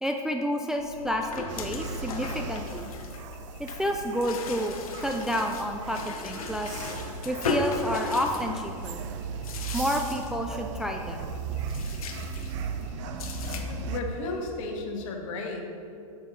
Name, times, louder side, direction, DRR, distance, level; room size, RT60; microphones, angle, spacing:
voice 1, 0.0-2.9 3.6-6.7 7.3-9.0 9.7-11.3, equal, 5° right, 2 dB, 0.3 m, -30 dB
sound 1, 0.8-14.5, left 4 dB, 75° left, 1.0 m, -37 dB
sound 2, 1.5-14.0, right 5 dB, 55° right, 0.7 m, -37 dB
voice 2, 13.7-15.8, left 2 dB, 60° left, 2 dB, 1.5 m, -34 dB
8.4 x 7.2 x 4.1 m, 2.6 s
hypercardioid pair, 125°, 18 cm